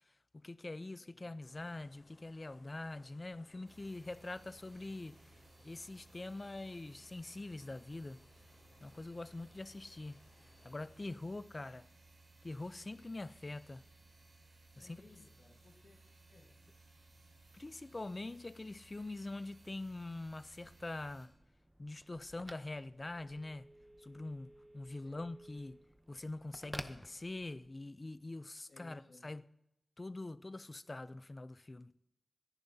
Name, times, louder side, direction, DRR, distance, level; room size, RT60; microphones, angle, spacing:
voice 1, 0.3-5.2 5.6-8.2 8.8-10.2 10.6-11.8 12.4-13.8 14.8-15.1 17.5-21.3 21.8-23.7 24.0-25.8 26.1-29.4 30.0-31.9, left 2 dB, 30° left, 0.5 m, -44 dB
voice 2, 1.0-1.3 14.8-16.0 16.3-16.6 24.9-25.3 28.6-29.3, left 3 dB, 60° left, 1.6 m, -61 dB
sound 1, 1.4-11.2, left 3 dB, 80° left, 4.5 m, -66 dB
sound 2, 3.7-21.3, right 2 dB, 40° right, 5.5 m, -62 dB
Telephone, 20.0-27.8, right 1 dB, 10° right, 0.7 m, -54 dB
25.0 x 10.5 x 2.7 m
wide cardioid pair, 115°, 0 cm